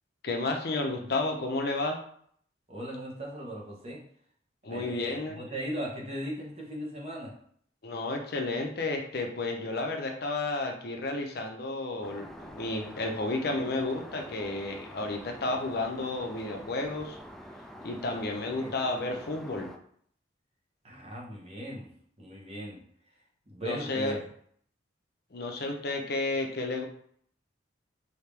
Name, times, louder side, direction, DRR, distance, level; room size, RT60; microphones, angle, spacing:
voice 1, 0.2-2.0 4.6-5.4 7.8-17.2 17.8-19.7 23.6-24.2 25.3-26.8, left 2 dB, 55° left, 3 dB, 0.7 m, -32 dB
voice 2, 2.7-4.0 4.7-7.3 18.1-18.7 20.8-21.9 22.2-22.8 23.5-24.2 25.6-25.7, equal, 35° right, -3 dB, 1.1 m, -38 dB
Aircraft, 12.0-19.8, equal, ahead, 0.3 m, -46 dB
5.1 x 2.8 x 3.3 m, 0.62 s
head